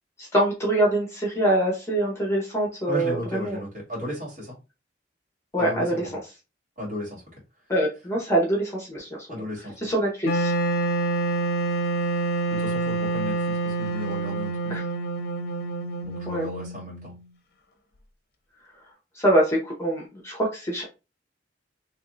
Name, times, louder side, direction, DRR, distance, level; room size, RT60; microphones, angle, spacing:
voice 1, 0.2-3.6 5.5-5.9 7.7-9.3 9.8-10.5 14.7-14.8 16.3-16.5 19.1-20.8, right 1 dB, 15° left, -2 dB, 1.0 m, -24 dB
voice 2, 2.9-4.6 5.6-6.2 6.8-7.2 9.3-9.9 12.5-14.8 16.0-17.1, equal, 45° right, -5 dB, 2.3 m, -35 dB
Wind instrument woodwind instrument, 10.2-17.2, right 3 dB, 55° left, 0.6 m, -27 dB
3.6 x 3.1 x 2.6 m, 0.28 s
head